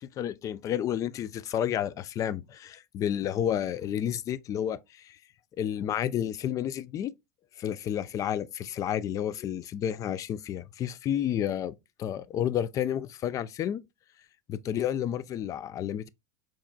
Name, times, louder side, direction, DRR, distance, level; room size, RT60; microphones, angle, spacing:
voice 1, 0.0-5.2 5.6-7.1 7.6-13.8 14.5-16.1, left 10 dB, 35° left, 0.4 m, -31 dB
4.6 x 3.0 x 2.2 m
hypercardioid pair, 90°, 9 cm